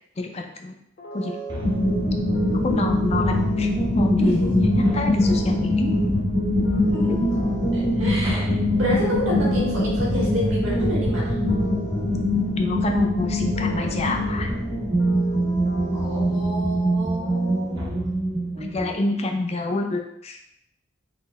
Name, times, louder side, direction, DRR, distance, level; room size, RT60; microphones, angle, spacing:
voice 1, 0.2-0.8 1.1-1.4 2.6-5.9 12.6-14.5 18.6-20.4, left 2 dB, 35° left, 3 dB, 0.4 m, -26 dB
sound 1, 1.0-18.2, equal, 55° left, 0.8 m, -39 dB
sound 2, 1.5-2.2 4.8-5.6 8.2-9.4 14.3-15.0 17.7-18.5, left 1 dB, 25° right, 0.7 m, -36 dB
sound 3, 1.6-18.9, equal, 70° right, 1.5 m, -23 dB
voice 2, 4.2-4.5 6.9-7.3 7.7-8.5 8.8-11.3 15.9-17.9, equal, 90° right, -4 dB, 1.4 m, -29 dB
3.9 x 2.1 x 4.0 m, 0.73 s
head